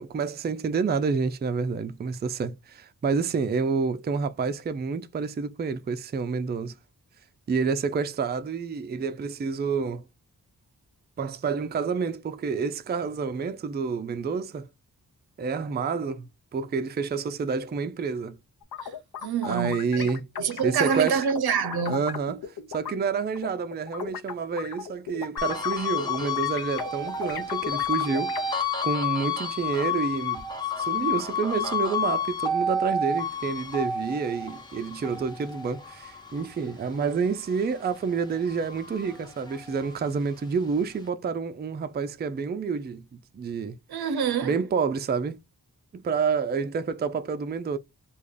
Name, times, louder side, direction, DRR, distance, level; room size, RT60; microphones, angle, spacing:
voice 1, 0.0-6.8 7.5-10.0 11.2-14.7 15.4-18.4 19.4-20.3 20.6-21.2 21.9-30.4 30.8-44.1 44.4-45.4 45.9-47.8, right 5 dB, 30° right, 0.3 m, -29 dB
sound 1, 18.6-22.9 23.4-28.4, left 7 dB, 70° left, 0.8 m, -37 dB
voice 2, 19.2-22.1 43.9-44.5, right 6 dB, 80° right, 0.6 m, -27 dB
sound 2, 25.4-38.0 38.4-40.1, left 4 dB, 10° left, 0.8 m, -30 dB
3.3 x 2.4 x 3.7 m
wide cardioid pair, 120°, 37 cm